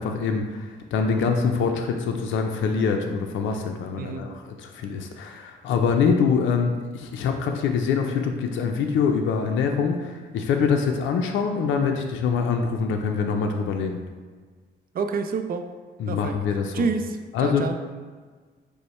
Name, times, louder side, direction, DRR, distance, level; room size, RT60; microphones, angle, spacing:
voice 1, 0.0-14.0 16.0-16.9 17.3-17.8, left 5 dB, 75° left, 4 dB, 0.5 m, -24 dB
voice 2, 14.9-15.7 16.1-16.3 16.7-17.8, right 5 dB, 45° right, 7 dB, 0.4 m, -28 dB
5.3 x 2.1 x 4.2 m, 1.5 s
cardioid pair, 90°, 20 cm